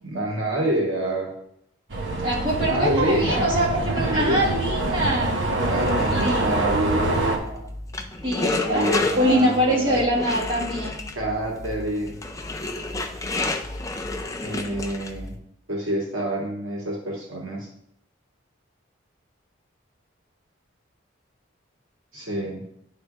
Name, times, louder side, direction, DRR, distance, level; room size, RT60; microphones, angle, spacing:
voice 1, 0.0-1.3 2.7-3.6 3.9-4.7 5.6-7.7 8.6-10.0 11.1-12.2 14.4-15.4 15.7-17.7 22.1-22.6, right 1 dB, 90° right, -3 dB, 2.2 m, -27 dB
sound 1, 1.9-7.4, right 2 dB, 70° right, 1.1 m, -25 dB
voice 2, 2.2-5.4 6.1-6.7 8.2-8.9 9.2-11.0, equal, 25° right, -5 dB, 1.9 m, -23 dB
sound 2, 5.6-15.3, left 2 dB, 15° left, 0.4 m, -31 dB
9.6 x 3.7 x 3.5 m, 0.74 s
head